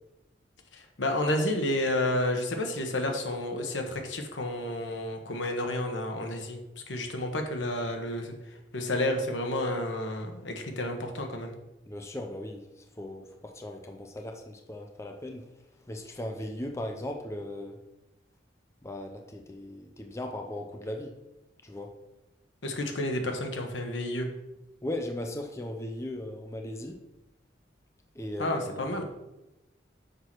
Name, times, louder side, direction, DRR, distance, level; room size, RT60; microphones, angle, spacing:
voice 1, 0.7-6.6 6.9-8.3 8.7-11.5 22.6-24.3 28.4-29.0, left 1 dB, 85° left, 4 dB, 1.3 m, -30 dB
voice 2, 11.9-15.5 15.8-17.8 18.8-21.1 21.6-22.0 24.8-27.0 28.2-29.1, left 1 dB, 15° left, 3 dB, 0.6 m, -38 dB
6.6 x 4.7 x 6.1 m, 0.97 s
head